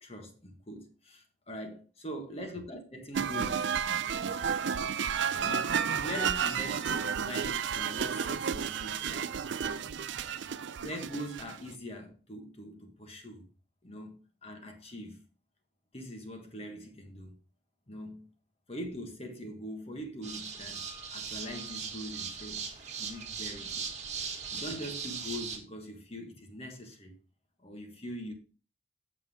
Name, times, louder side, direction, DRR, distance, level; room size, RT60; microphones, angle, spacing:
voice 1, 0.0-3.7 5.4-9.3 9.6-9.9 10.8-13.5 13.8-15.2 15.9-17.4 17.9-18.3 18.7-22.7 23.0-23.9 24.5-27.1 27.6-28.3, equal, 30° left, 1.5 m, -42 dB
sound 1, 3.1-11.7, right 7 dB, 65° right, 0.4 m, -32 dB
sound 2, 20.2-25.6, right 6 dB, 35° right, 1.5 m, -39 dB
7.8 x 7.4 x 3.6 m
head